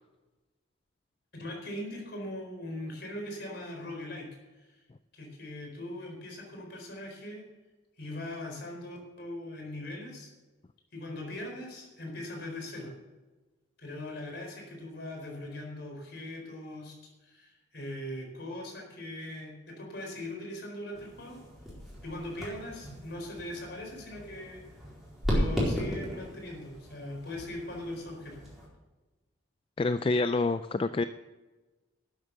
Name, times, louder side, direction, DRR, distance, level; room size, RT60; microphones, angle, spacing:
voice 1, 1.3-4.3 4.6-4.7 5.1-7.4 8.0-10.3 10.9-12.9 13.8-16.9 17.2-21.4 22.0-24.6 25.3-28.4, left 1 dB, 55° left, 1 dB, 4.4 m, -40 dB
sound 1, 20.9-28.7, equal, ahead, 4.3 m, -36 dB
voice 2, 29.8-31.0, left 3 dB, 25° left, 11 dB, 0.3 m, -27 dB
12.5 x 8.7 x 6.8 m, 1.2 s
head